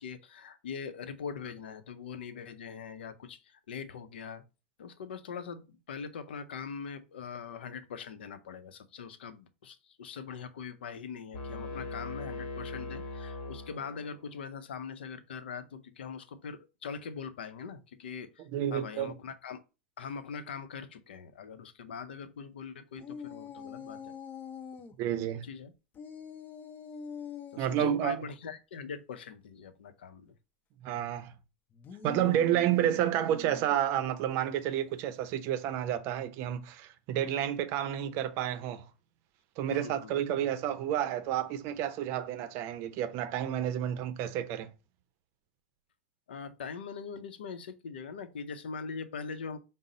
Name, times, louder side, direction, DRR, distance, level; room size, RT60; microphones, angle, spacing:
voice 1, 0.0-4.4 4.8-19.6 20.0-24.1 25.0-25.7 27.5-30.3 37.2-37.5 39.7-40.2 46.3-49.6, left 6 dB, 80° left, 0.6 m, -42 dB
sound 1, 11.3-14.3, left 2 dB, 60° left, 1.0 m, -40 dB
voice 2, 18.5-19.1 25.0-25.5 27.6-28.2 30.8-31.3 32.0-38.9 39.6-44.7, right 11 dB, 50° right, 0.5 m, -30 dB
sound 2, 23.0-24.9 25.9-27.9 31.7-33.9, left 6 dB, 30° left, 0.7 m, -45 dB
5.2 x 2.0 x 3.8 m
hypercardioid pair, 110°, 6 cm